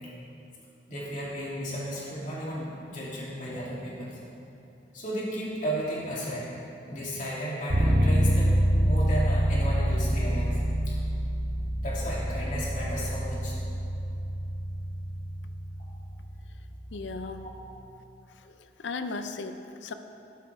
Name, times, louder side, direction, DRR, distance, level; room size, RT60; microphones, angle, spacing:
voice 1, 0.9-4.1 4.9-6.5 6.9-10.6 10.9-11.0 11.8-13.5 17.4-17.5, equal, 45° left, -6 dB, 2.9 m, -34 dB
sound 1, 7.7-17.4, equal, 60° right, 1.8 m, -27 dB
voice 2, 16.9-17.4 18.8-19.9, left 3 dB, 90° left, 8 dB, 0.6 m, -35 dB
12.0 x 12.0 x 3.6 m, 2.9 s
head